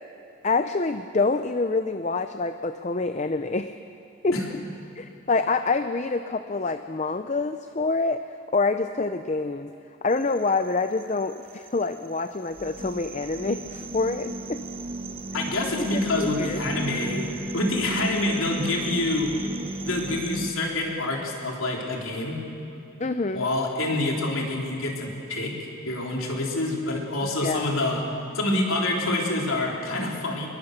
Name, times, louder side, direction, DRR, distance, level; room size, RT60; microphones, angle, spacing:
voice 1, 0.4-3.7 4.2-4.6 5.0-8.2 8.5-9.7 10.0-14.6 15.9-16.6 23.0-23.5 27.2-27.7, left 3 dB, 35° left, 9 dB, 0.5 m, -26 dB
sound 1, 10.1-20.5, right 1 dB, 25° right, 0.8 m, -35 dB
voice 2, 15.3-19.3 19.8-22.4 23.3-25.6 25.8-28.0 28.3-30.5, left 2 dB, 85° left, -1 dB, 3.7 m, -27 dB
24.5 x 21.5 x 6.7 m, 3.0 s
head